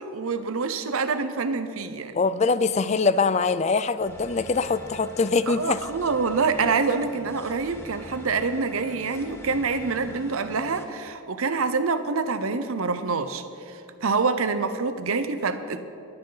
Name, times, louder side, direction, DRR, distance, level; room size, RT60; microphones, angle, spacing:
voice 1, 0.0-2.2 5.5-15.9, right 4 dB, 75° right, 10 dB, 0.7 m, -26 dB
voice 2, 2.2-5.8, left 4 dB, 30° left, 14 dB, 0.4 m, -23 dB
sound 1, 4.0-10.8, left 1 dB, 10° left, 0.9 m, -44 dB
22.0 x 8.9 x 4.0 m, 2.7 s
head